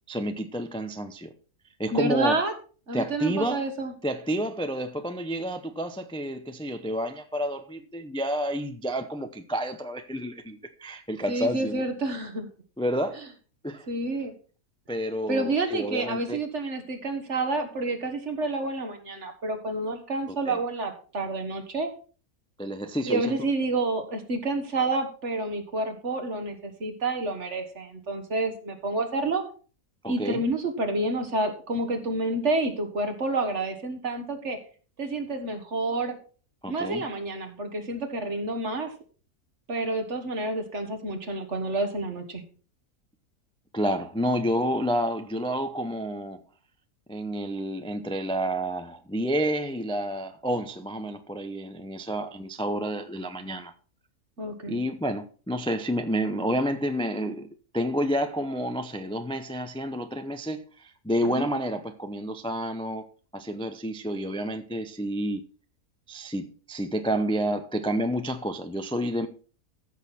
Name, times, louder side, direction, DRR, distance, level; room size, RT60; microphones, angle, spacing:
voice 1, 0.1-1.3 1.8-2.4 2.9-3.6 4.0-11.8 12.8-13.2 13.6-13.9 14.9-16.4 20.3-20.6 22.6-23.3 30.0-30.4 36.6-37.0 43.7-46.4 47.1-53.7 54.7-57.5 57.7-63.1 63.3-65.4 66.1-69.3, equal, 5° left, 0.4 m, -29 dB
voice 2, 1.9-2.5 2.9-3.9 11.3-12.5 13.9-14.3 15.3-21.9 23.1-29.4 30.1-34.6 35.0-36.2 36.7-38.9 39.7-42.4 54.4-54.8 61.2-61.5, right 2 dB, 50° right, 1.9 m, -29 dB
14.0 x 6.4 x 4.2 m
omnidirectional pair, 1.6 m